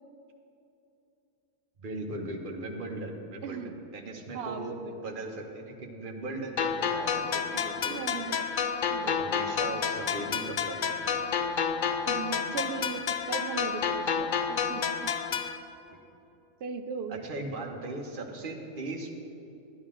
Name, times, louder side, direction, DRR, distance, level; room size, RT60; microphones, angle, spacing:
voice 1, 1.8-3.6 3.9-4.7 5.0-8.4 9.0-11.5 17.1-19.1, right 2 dB, 45° right, 1 dB, 1.2 m, -38 dB
voice 2, 3.4-3.8 4.3-5.0 7.8-8.6 8.9-9.1 12.1-15.2 16.6-17.2, right 6 dB, 60° right, 8 dB, 0.8 m, -38 dB
sound 1, 6.6-15.6, left 6 dB, 60° left, 0.5 m, -30 dB
11.5 x 10.5 x 3.7 m, 2.8 s
omnidirectional pair, 1.3 m